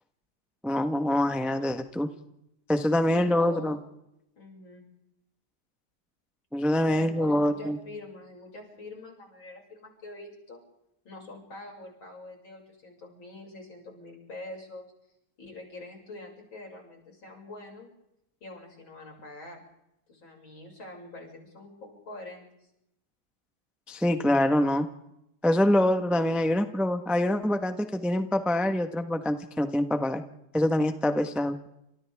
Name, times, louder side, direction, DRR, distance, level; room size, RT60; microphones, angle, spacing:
voice 1, 0.6-2.1 2.7-3.8 6.5-7.8 23.9-24.9 25.4-30.2 30.5-31.6, left 1 dB, ahead, 7 dB, 0.9 m, -25 dB
voice 2, 3.0-3.8 4.4-4.9 6.8-10.6 11.1-14.9 15.4-17.9 18.4-19.6 20.1-22.7, left 2 dB, 65° left, 0 dB, 7.2 m, -45 dB
30.0 x 27.5 x 3.6 m, 0.83 s
omnidirectional pair, 2.3 m